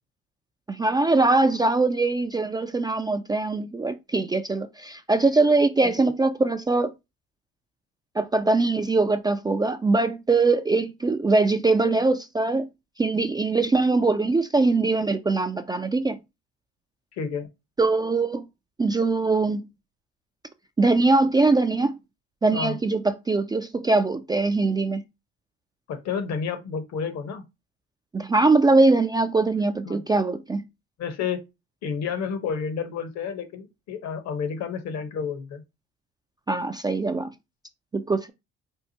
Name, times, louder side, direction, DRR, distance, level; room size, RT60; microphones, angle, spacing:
voice 1, 0.7-6.9 8.2-12.7 13.0-16.2 17.8-18.4 18.8-19.6 20.8-22.0 22.4-25.0 28.1-30.6 36.5-37.3 37.9-38.3, right 3 dB, 15° right, 0.3 m, -22 dB
voice 2, 17.1-17.5 22.5-22.8 25.9-27.5 29.8-30.0 31.0-31.4 31.8-35.6, left 6 dB, 60° left, 1.0 m, -30 dB
4.5 x 2.4 x 2.8 m
hypercardioid pair, 60°, 31 cm